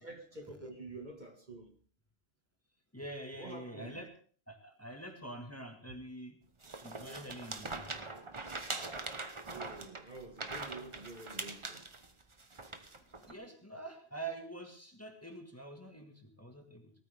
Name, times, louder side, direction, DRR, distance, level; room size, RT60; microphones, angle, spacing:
voice 1, 0.0-1.7 3.4-4.0 5.9-6.0 9.5-11.9, right 2 dB, 45° right, 2.0 m, -48 dB
voice 2, 2.9-4.1 4.5-6.4 6.8-8.1 13.3-16.9, right 2 dB, 15° left, 1.8 m, -46 dB
sound 1, 6.6-13.3, right 3 dB, 30° right, 1.0 m, -42 dB
19.0 x 13.5 x 3.5 m
omnidirectional pair, 1.1 m